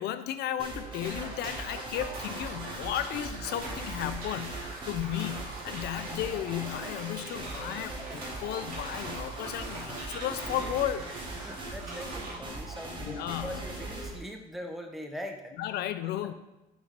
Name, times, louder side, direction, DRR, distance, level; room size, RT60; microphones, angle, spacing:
voice 1, 0.0-11.1 13.0-13.6 15.6-16.3, left 11 dB, 75° left, 11 dB, 0.5 m, -34 dB
sound 1, 0.6-14.2, right 2 dB, 30° right, 1.5 m, -40 dB
sound 2, 1.0-12.3, right 2 dB, 60° right, 2.3 m, -43 dB
voice 2, 11.4-15.6 16.0-16.3, equal, ahead, 3 dB, 0.9 m, -42 dB
6.1 x 4.2 x 5.1 m, 1.0 s
cardioid pair, 110°, 17 cm